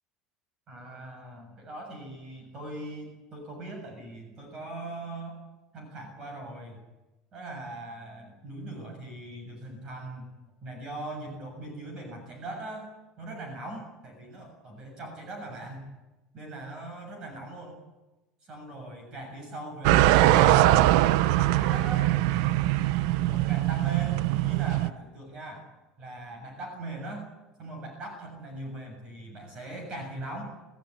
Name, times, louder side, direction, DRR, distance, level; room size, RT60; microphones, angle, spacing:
voice 1, 0.7-5.4 5.7-6.8 7.3-10.3 10.6-12.9 13.2-15.9 16.3-17.8 18.4-20.9 21.1-22.1 22.7-25.7 26.0-27.3 27.6-30.5, right 2 dB, 30° right, 2 dB, 7.0 m, -40 dB
sound 1, 19.8-24.9, right 15 dB, 70° right, 0.8 m, -22 dB
27.5 x 16.5 x 9.7 m, 1.1 s
cardioid pair, 180°, 3 cm